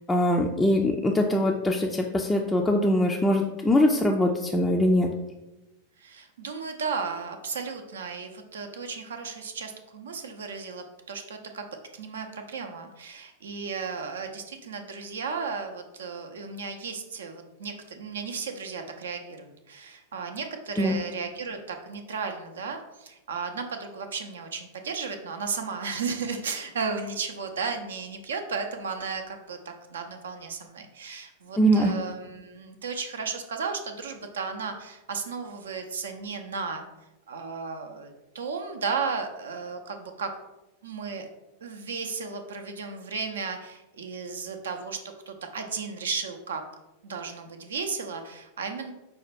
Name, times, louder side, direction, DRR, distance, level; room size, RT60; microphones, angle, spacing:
voice 1, 0.0-5.1 20.8-21.0 31.6-31.9, equal, 10° left, 0 dB, 0.4 m, -22 dB
voice 2, 6.0-11.7 11.9-36.9 37.3-40.3 40.8-41.3 41.6-45.0 45.3-46.6 47.0-48.9, right 5 dB, 65° right, 5 dB, 0.5 m, -34 dB
5.5 x 2.2 x 4.2 m, 0.99 s
figure-of-eight pair, 90°, 0 cm